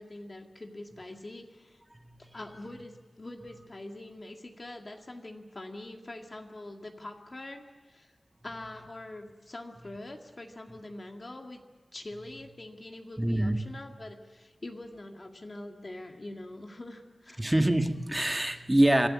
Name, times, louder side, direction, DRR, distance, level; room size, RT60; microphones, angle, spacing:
voice 1, 0.0-1.8 2.2-8.1 8.4-11.6 11.9-17.4, left 2 dB, 45° left, 3 dB, 2.1 m, -44 dB
voice 2, 1.9-2.4 13.2-13.6 17.4-19.1, right 1 dB, 20° right, 6 dB, 1.5 m, -25 dB
25.5 x 14.0 x 9.7 m, 1.3 s
wide cardioid pair, 70°, 0 cm